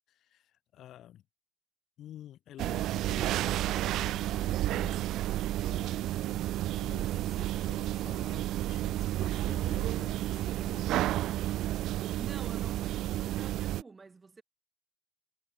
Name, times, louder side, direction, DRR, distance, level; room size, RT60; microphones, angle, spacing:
voice 1, 0.1-1.2 2.0-5.1 5.6-11.0, left 12 dB, 65° left, 2.3 m, -51 dB
sound 1, 2.6-13.8, right 14 dB, 85° right, 0.4 m, -31 dB
voice 2, 12.1-14.4, right 4 dB, 20° right, 1.7 m, -49 dB
cardioid pair, 170°, 0 cm